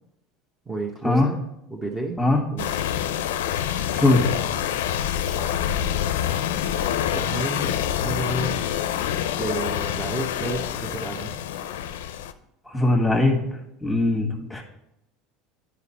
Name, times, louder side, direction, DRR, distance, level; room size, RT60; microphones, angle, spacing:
voice 1, 0.7-1.4 1.7-2.2 2.5-2.8 5.3-5.6 7.1-7.8 8.0-8.7 9.4-11.4, right 2 dB, 15° right, -2 dB, 1.0 m, -31 dB
sound 1, 2.6-12.3, left 10 dB, 90° left, 0.5 m, -26 dB
voice 2, 3.9-4.3 12.7-13.4 13.8-14.6, left 2 dB, ahead, 2 dB, 1.6 m, -20 dB
9.6 x 5.1 x 4.2 m, 0.82 s
supercardioid pair, 110°, 0 cm